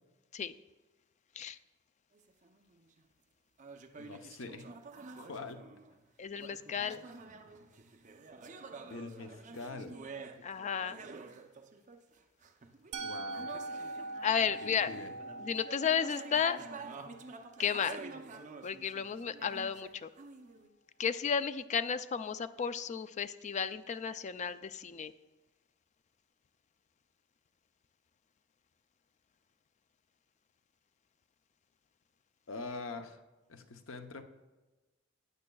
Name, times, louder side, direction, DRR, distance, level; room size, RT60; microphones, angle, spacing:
sound 1, 2.1-3.0 3.6-6.0 6.3-20.7, right 4 dB, 40° right, 0.6 m, -49 dB
voice 1, 4.0-4.7 5.2-5.8 8.9-10.0 13.0-13.5 14.6-15.1 32.5-33.2 33.5-34.2, left 3 dB, 70° left, 7 dB, 0.8 m, -44 dB
voice 2, 6.2-7.0 10.4-11.0 14.2-14.9 15.4-16.6 17.6-18.0 18.6-20.1 21.0-25.1, left 7 dB, 35° left, 13 dB, 0.3 m, -33 dB
Musical instrument, 12.9-18.8, right 2 dB, 75° right, 0.6 m, -44 dB
15.0 x 9.5 x 2.3 m, 1.2 s
head